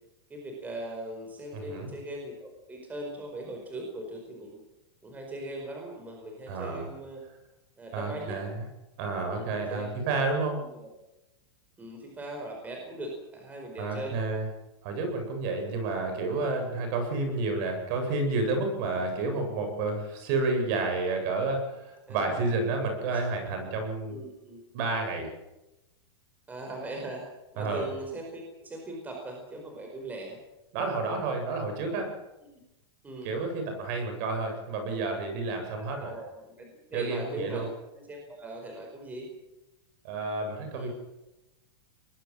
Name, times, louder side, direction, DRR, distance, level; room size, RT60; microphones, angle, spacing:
voice 1, 0.3-4.6 5.0-7.2 7.8-8.4 9.3-10.0 10.2-10.9 11.8-14.1 15.6-15.7 22.1-22.5 24.0-24.6 26.5-27.3 27.5-30.4 33.0-33.5 35.7-39.3 40.7-40.9, right 1 dB, 10° right, 2 dB, 4.7 m, -40 dB
voice 2, 1.5-1.9 6.5-6.9 7.9-8.5 9.0-10.6 13.8-14.5 14.8-24.2 24.7-25.3 27.6-27.9 30.7-32.1 33.2-36.1 36.9-37.6 40.0-40.9, right 3 dB, 45° right, 5 dB, 8.0 m, -30 dB
23.5 x 20.5 x 7.6 m, 0.98 s
supercardioid pair, 155°, 14 cm